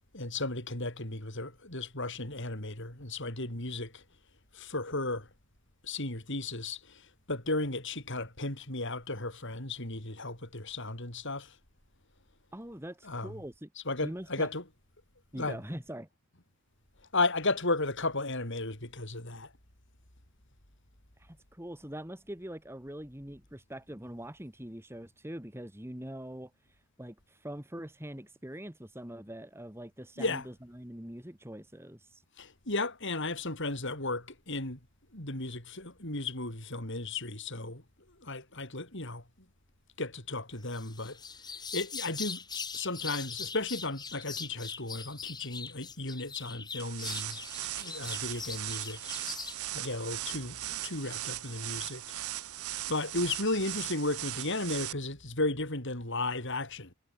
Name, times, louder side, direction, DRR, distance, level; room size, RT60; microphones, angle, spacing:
voice 1, 0.1-4.0 4.5-5.3 5.8-11.6 13.0-13.3 13.9-14.6 15.3-15.6 17.1-19.5 30.2-30.4 32.4-34.8 35.1-37.8 38.2-39.2 40.0-41.2 41.7-47.4 47.8-49.0 49.7-52.0 52.9-56.9, left 2 dB, 55° left, 5.8 m, -34 dB
voice 2, 12.5-13.7 14.0-14.5 15.3-16.1 21.2-26.5 27.0-32.2, right 1 dB, 10° right, 2.1 m, -43 dB
sound 1, 40.7-49.6, left 5 dB, 20° left, 2.0 m, -41 dB
sound 2, 46.8-54.9, right 13 dB, 85° right, 1.3 m, -38 dB
head